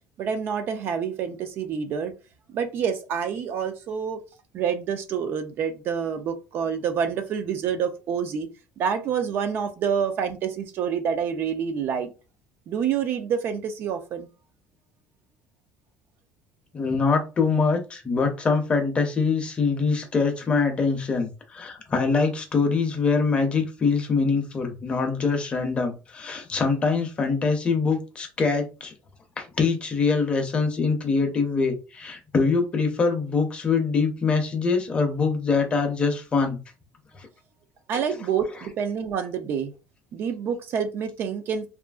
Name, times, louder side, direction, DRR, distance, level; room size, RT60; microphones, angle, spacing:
voice 1, 0.2-2.1 2.5-4.2 4.5-8.5 8.8-12.1 12.7-14.3 37.9-39.7 40.1-41.7, right 7 dB, 45° right, 0.3 m, -27 dB
voice 2, 16.7-28.9 29.4-36.6 37.1-37.3 37.9-38.0, left 4 dB, 20° left, 0.5 m, -24 dB
2.7 x 2.4 x 2.3 m
cardioid pair, 165°, 5 cm